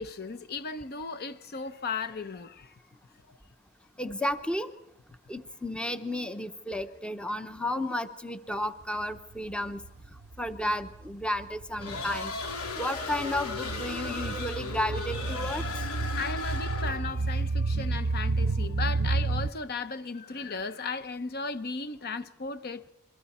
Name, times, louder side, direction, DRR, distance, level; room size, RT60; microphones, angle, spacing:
voice 1, 0.0-2.7 16.1-22.9, left 4 dB, 45° left, 0.8 m, -36 dB
voice 2, 4.0-4.7 5.3-9.8 10.4-12.3 12.8-15.6, left 1 dB, 5° left, 0.7 m, -32 dB
sound 1, 9.0-9.9 10.2-19.5, right 3 dB, 50° right, 0.6 m, -31 dB
sound 2, 11.8-17.2, left 3 dB, 80° left, 3.2 m, -36 dB
28.0 x 23.0 x 4.3 m
head